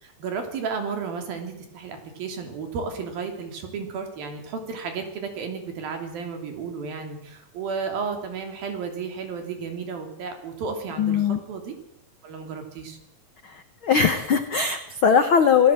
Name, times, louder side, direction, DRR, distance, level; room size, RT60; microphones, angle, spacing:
voice 1, 0.0-11.8 12.2-13.0, right 5 dB, 75° right, 5 dB, 4.8 m, -33 dB
voice 2, 11.0-11.4 13.4-15.7, left 6 dB, 80° left, 8 dB, 1.1 m, -20 dB
27.0 x 16.5 x 7.7 m, 0.78 s
omnidirectional pair, 4.2 m